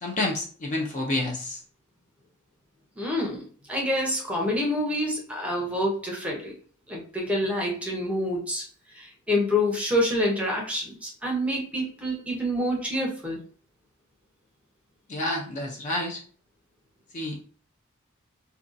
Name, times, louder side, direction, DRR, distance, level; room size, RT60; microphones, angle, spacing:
voice 1, 0.0-1.6 15.1-16.2 17.1-17.4, left 2 dB, 35° left, 0 dB, 0.4 m, -29 dB
voice 2, 3.0-6.5 6.9-8.6 8.9-13.4, left 1 dB, 5° right, -1 dB, 0.7 m, -27 dB
2.6 x 2.2 x 2.5 m, 0.43 s
head